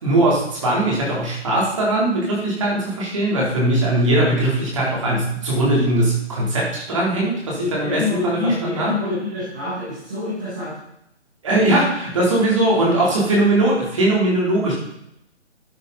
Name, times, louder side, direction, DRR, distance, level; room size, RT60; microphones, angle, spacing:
voice 1, 0.0-8.9 11.4-14.7, right 1 dB, 25° right, -4 dB, 3.5 m, -20 dB
voice 2, 7.5-10.8, left 2 dB, 5° right, -12 dB, 0.9 m, -26 dB
11.5 x 9.0 x 4.1 m, 0.79 s
hypercardioid pair, 175°, 35 cm